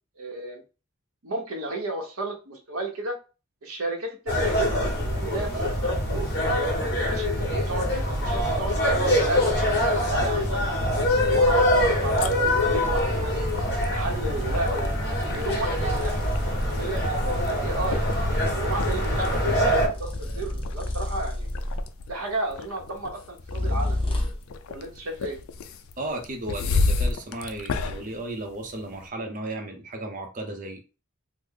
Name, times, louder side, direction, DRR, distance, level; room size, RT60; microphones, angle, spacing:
voice 1, 0.2-0.6 1.2-3.2 3.6-6.3 7.0-9.5 10.1-13.4 13.9-14.9 15.3-16.4 16.6-18.0 18.5-21.5 22.1-24.2 24.7-25.4, right 2 dB, 90° right, 0.9 m, -32 dB
sound 1, 4.3-19.9, left 1 dB, 50° left, 1.3 m, -24 dB
sound 2, 11.9-29.1, left 3 dB, 75° left, 0.4 m, -34 dB
sound 3, 14.4-14.7 15.6-18.6 19.8-22.1 23.4-24.5, left 1 dB, 25° left, 0.6 m, -31 dB
voice 2, 26.0-30.8, right 1 dB, 40° right, 0.7 m, -34 dB
3.2 x 2.1 x 3.6 m
head